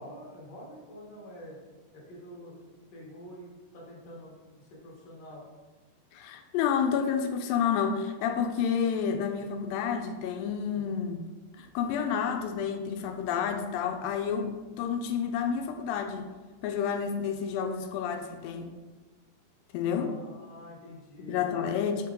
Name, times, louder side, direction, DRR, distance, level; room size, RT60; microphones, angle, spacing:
voice 1, 0.0-1.6 1.9-5.4 10.7-11.0 12.3-12.4 19.8-21.5, equal, 45° left, -4 dB, 1.5 m, -47 dB
voice 2, 6.1-11.2 11.6-16.3 16.6-18.7 19.7-20.1 21.3-22.1, left 7 dB, 85° left, 6 dB, 2.3 m, -30 dB
5.7 x 5.0 x 3.7 m, 1.3 s
omnidirectional pair, 4.0 m